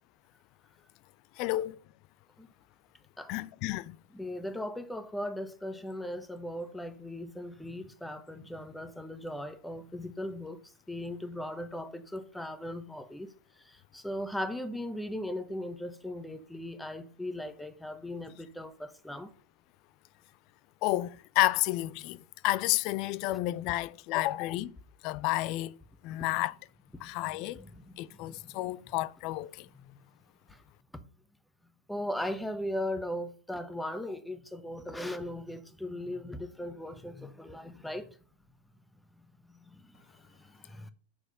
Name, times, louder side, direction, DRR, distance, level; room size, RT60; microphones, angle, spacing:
voice 1, 1.4-1.8 3.3-4.0 20.8-24.7 25.0-25.8 26.0-26.5 27.0-27.6 28.0-29.7, left 17 dB, 40° left, 0.5 m, -31 dB
voice 2, 4.1-10.6 10.9-13.3 13.9-19.3 26.9-27.0 27.6-27.7 28.3-28.4 31.9-38.0 40.8-40.9, left 1 dB, 5° left, 1.1 m, -38 dB
7.7 x 6.4 x 6.6 m
figure-of-eight pair, 90°, 0 cm